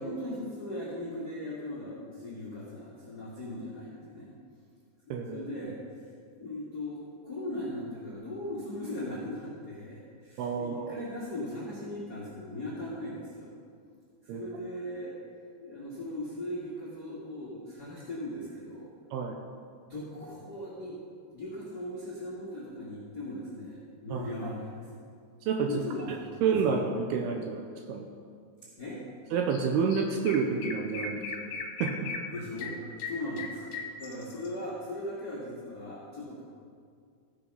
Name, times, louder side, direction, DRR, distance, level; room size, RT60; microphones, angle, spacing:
voice 1, 0.0-4.3 5.3-5.8 6.4-13.5 14.2-15.2 15.6-18.9 19.9-21.0 21.3-24.9 25.6-26.8 28.8-29.0 32.3-32.8 33.0-36.4, left 1 dB, 55° left, -6 dB, 1.0 m, -38 dB
voice 2, 5.1-5.5 10.4-10.9 14.3-14.5 19.1-19.3 24.1-24.2 25.5-25.8 26.4-28.1 29.3-31.2 31.8-32.0, right 5 dB, 80° right, 3 dB, 2.4 m, -29 dB
Chirp tweet, 29.5-29.6 29.9-34.5, left 4 dB, 70° left, 2.6 m, -38 dB
14.5 x 7.0 x 5.4 m, 2.3 s
omnidirectional pair, 5.1 m